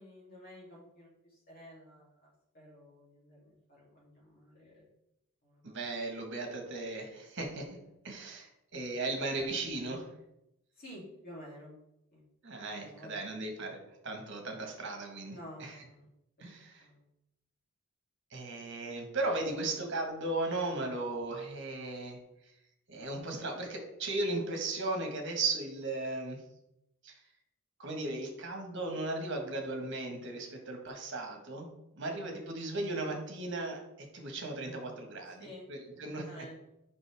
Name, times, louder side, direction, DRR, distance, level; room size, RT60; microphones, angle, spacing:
voice 1, 0.0-4.8 5.4-5.6 10.8-11.7 12.1-12.2 12.7-13.2 15.3-16.1 16.4-16.5 16.8-17.0 35.4-35.7 35.9-36.7, equal, 40° left, -5 dB, 2.9 m, -51 dB
voice 2, 5.6-7.8 8.0-10.1 12.4-15.8 16.4-16.9 18.3-22.2 22.9-26.4 27.0-27.2 27.8-31.7 32.0-36.3, right 2 dB, 55° right, 3 dB, 1.5 m, -36 dB
7.8 x 5.3 x 3.5 m, 0.85 s
head